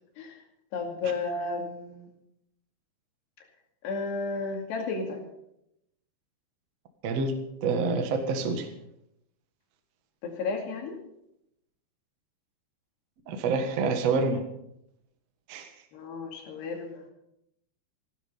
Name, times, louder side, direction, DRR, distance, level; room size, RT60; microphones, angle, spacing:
voice 1, 0.7-2.1 3.8-5.2 10.2-11.0 15.9-17.0, left 4 dB, 65° left, 3 dB, 4.3 m, -33 dB
voice 2, 7.0-8.7 13.3-14.4 15.5-15.7, right 4 dB, 55° right, 6 dB, 2.0 m, -27 dB
16.0 x 12.5 x 5.7 m, 0.80 s
omnidirectional pair, 5.2 m